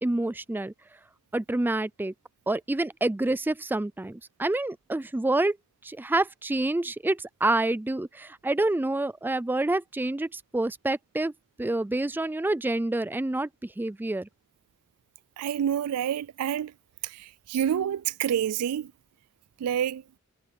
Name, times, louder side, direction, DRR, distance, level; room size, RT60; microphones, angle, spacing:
voice 1, 0.0-0.7 1.3-2.1 2.5-5.6 5.8-11.3 11.6-14.3, right 2 dB, 10° right, 0.3 m, -27 dB
voice 2, 15.4-16.7 17.5-18.9 19.6-20.0, right 9 dB, 85° right, 0.3 m, -27 dB
head